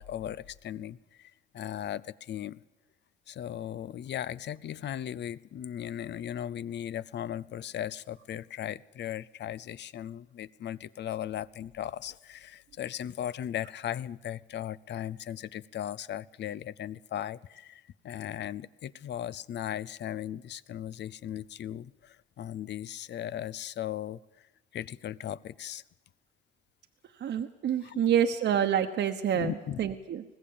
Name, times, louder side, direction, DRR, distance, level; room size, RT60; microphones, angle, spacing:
voice 1, 0.0-2.6 3.3-24.2 24.7-25.8 27.8-28.2 29.3-29.8, left 11 dB, 60° left, 20 dB, 0.6 m, -37 dB
voice 2, 27.2-30.2, right 9 dB, 65° right, 5 dB, 1.1 m, -27 dB
20.0 x 15.5 x 8.7 m, 1.1 s
cardioid pair, 90°, 20 cm